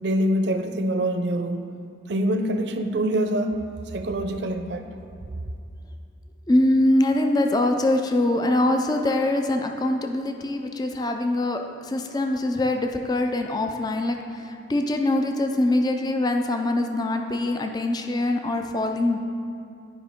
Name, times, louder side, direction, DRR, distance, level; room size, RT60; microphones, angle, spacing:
voice 1, 0.0-1.6 2.1-3.5 3.9-4.9, right 1 dB, 60° right, 7 dB, 0.5 m, -25 dB
voice 2, 6.5-19.2, left 1 dB, 20° left, 4 dB, 0.4 m, -23 dB
11.0 x 5.2 x 3.6 m, 2.5 s
head